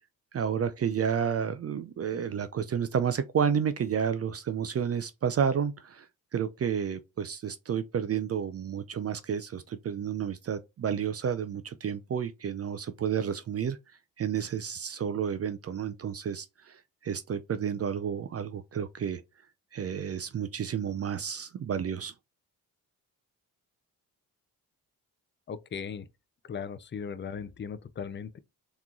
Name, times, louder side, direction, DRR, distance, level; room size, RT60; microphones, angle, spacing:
voice 1, 0.3-6.1 6.3-13.8 14.2-19.2 19.7-22.1, right 7 dB, 40° right, 0.5 m, -31 dB
voice 2, 25.5-26.1 26.5-28.4, left 6 dB, 30° left, 0.5 m, -38 dB
3.6 x 3.1 x 3.7 m
supercardioid pair, 60°, 39 cm